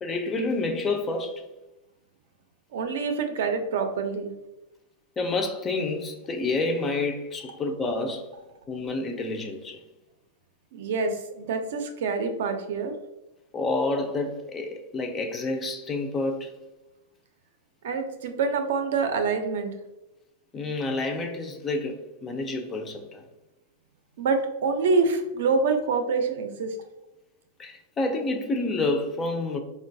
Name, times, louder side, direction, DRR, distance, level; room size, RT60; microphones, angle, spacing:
voice 1, 0.0-1.4 5.2-8.3 8.7-9.8 13.5-16.5 20.5-23.2 27.6-29.6, left 2 dB, 15° left, 0.3 m, -29 dB
voice 2, 2.7-4.3 10.7-12.9 17.8-19.7 24.2-26.8, right 4 dB, 70° right, 0.5 m, -26 dB
3.8 x 2.1 x 2.6 m
supercardioid pair, 160°, 0 cm